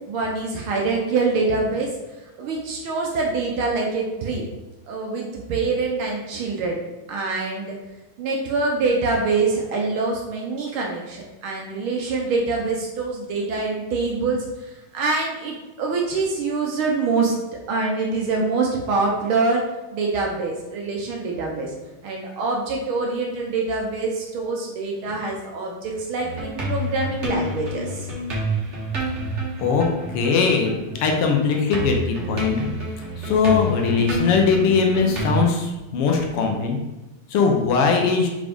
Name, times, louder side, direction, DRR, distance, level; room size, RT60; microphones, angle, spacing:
voice 1, 0.1-2.0 2.4-4.4 4.9-6.8 7.1-7.8 8.2-17.3 17.7-19.6 19.9-21.7 22.0-28.1, right 3 dB, 80° right, -1 dB, 1.1 m, -25 dB
sound 1, 26.2-31.2 31.5-35.5, right 1 dB, 45° right, 0.9 m, -28 dB
voice 2, 30.1-32.7 33.0-36.8 37.3-38.3, left 5 dB, 70° left, 2 dB, 1.4 m, -20 dB
5.3 x 5.1 x 3.6 m, 1.1 s
omnidirectional pair, 3.3 m